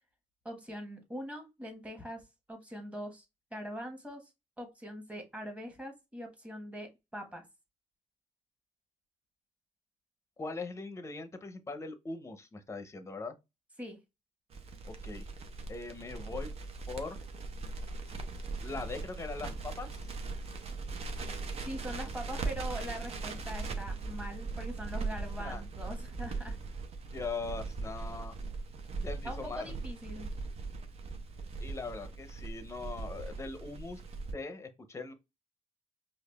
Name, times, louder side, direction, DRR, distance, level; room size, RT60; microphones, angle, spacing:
voice 1, 0.4-3.2 3.5-4.3 4.6-7.4 13.8-14.0 21.6-26.6 29.2-30.3, equal, 10° right, 1.2 m, -42 dB
voice 2, 10.4-13.3 14.8-15.3 15.7-16.5 16.9-17.2 18.6-20.0 25.4-25.6 27.1-28.3 29.0-29.7 31.6-34.0 34.3-35.1, left 3 dB, 20° left, 0.7 m, -41 dB
Crackle, 14.5-34.3, right 3 dB, 50° right, 0.7 m, -39 dB
4.8 x 2.4 x 2.3 m
cardioid pair, 90°, 14 cm